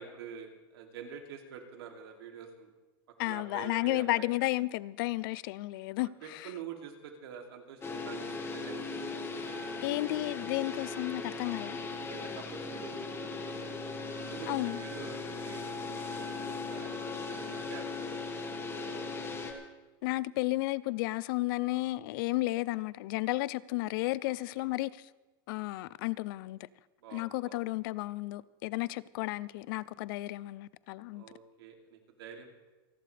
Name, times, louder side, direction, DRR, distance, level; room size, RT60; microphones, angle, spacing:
voice 1, 0.0-2.7 3.2-4.3 6.2-8.2 8.5-9.0 12.1-13.8 14.2-18.2 24.2-24.7 27.0-27.6 31.1-32.5, right 7 dB, 80° right, 2.8 m, -47 dB
voice 2, 3.2-6.5 9.8-11.8 14.5-14.8 20.0-25.0 25.5-26.7 27.1-31.2, left 19 dB, 60° left, 0.5 m, -33 dB
sound 1, 7.8-19.5, left 3 dB, 20° left, 2.0 m, -38 dB
28.0 x 11.5 x 3.4 m
supercardioid pair, 135°, 13 cm